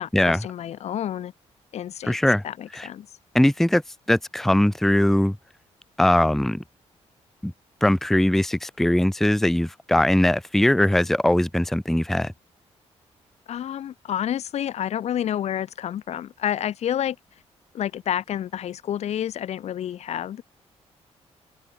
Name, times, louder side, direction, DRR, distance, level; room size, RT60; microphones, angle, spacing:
voice 1, 0.0-1.3 1.7-2.2 2.4-3.1 13.5-17.2 17.7-20.4, left 10 dB, 70° left, 1.6 m, -29 dB
voice 2, 2.0-2.4 2.7-2.9 3.3-3.8 4.1-5.4 6.0-6.6 7.4-7.5 7.8-12.3, left 1 dB, 5° left, 0.7 m, -20 dB
cardioid pair, 120°, 12 cm